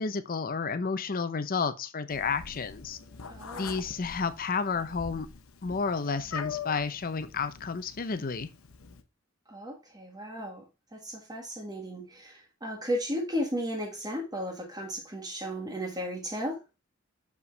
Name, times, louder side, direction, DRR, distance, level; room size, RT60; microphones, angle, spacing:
voice 1, 0.0-3.0 3.5-5.3 5.6-8.5, left 5 dB, 45° left, 0.6 m, -31 dB
Meow, 2.1-9.0, left 6 dB, 85° left, 0.9 m, -43 dB
voice 2, 3.3-3.8 9.5-10.6 10.9-16.6, equal, 20° right, 1.6 m, -35 dB
6.8 x 4.9 x 3.3 m
head